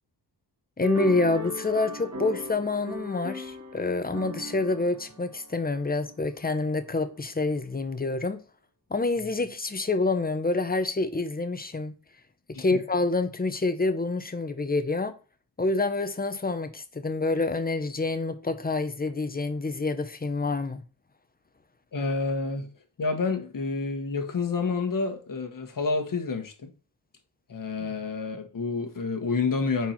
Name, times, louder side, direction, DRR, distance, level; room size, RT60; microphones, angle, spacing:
voice 1, 0.8-8.4 8.9-12.0 12.6-15.2 15.6-20.8, left 3 dB, 20° left, 0.8 m, -27 dB
sound 1, 0.8-6.4, equal, 35° right, 1.6 m, -37 dB
voice 2, 21.9-22.7 23.0-26.7 27.5-29.9, left 4 dB, 45° left, 1.4 m, -29 dB
4.6 x 4.4 x 5.7 m
cardioid pair, 85°, 44 cm